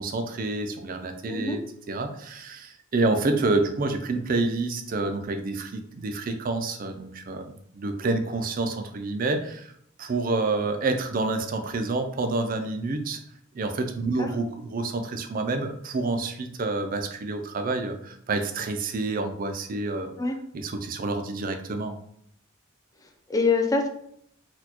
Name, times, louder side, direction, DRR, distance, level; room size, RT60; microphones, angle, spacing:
voice 1, 0.0-1.6 1.9-9.7 10.0-13.2 13.5-20.1 20.5-22.0, right 3 dB, 45° right, 6 dB, 0.4 m, -28 dB
voice 2, 1.3-1.6 14.2-14.3 20.2-20.4 23.0-23.9, left 3 dB, 20° left, 3 dB, 0.4 m, -25 dB
4.2 x 2.3 x 2.8 m, 0.69 s
head